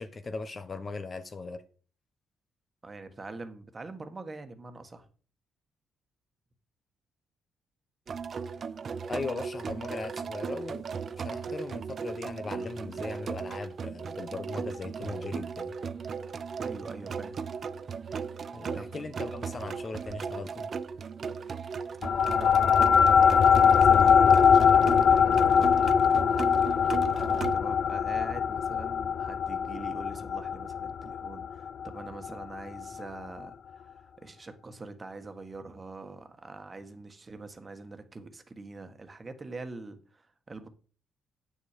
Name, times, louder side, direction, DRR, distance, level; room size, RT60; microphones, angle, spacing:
voice 1, 0.0-1.6 9.1-10.9 11.2-15.7 18.5-20.7, left 3 dB, 35° left, 1.0 m, -38 dB
voice 2, 2.8-5.1 16.6-17.4 18.7-18.9 22.2-26.1 27.2-40.7, right 3 dB, 30° right, 1.5 m, -44 dB
sound 1, 8.1-27.6, right 5 dB, 50° right, 0.6 m, -36 dB
sound 2, 22.0-32.8, left 7 dB, 55° left, 0.4 m, -22 dB
8.9 x 7.1 x 5.1 m
cardioid pair, 90°, 0 cm